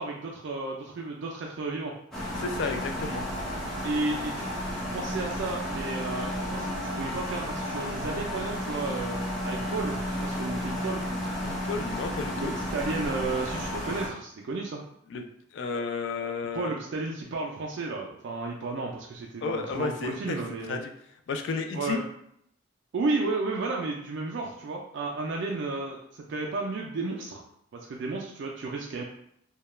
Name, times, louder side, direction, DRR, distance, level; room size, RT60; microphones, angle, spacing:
voice 1, 0.0-1.9 3.8-9.2 9.5-11.0 12.4-14.8 16.5-20.8 21.7-22.0 22.9-27.4 27.7-29.0, right 3 dB, 60° right, -1 dB, 0.3 m, -33 dB
sound 1, 2.1-14.1, equal, ahead, 0.6 m, -32 dB
voice 2, 2.4-3.3 11.4-12.5 15.1-15.2 15.5-16.7 19.4-20.4 20.7-20.9 21.3-22.0, left 4 dB, 65° left, 6 dB, 0.3 m, -32 dB
2.2 x 2.1 x 3.0 m, 0.72 s
head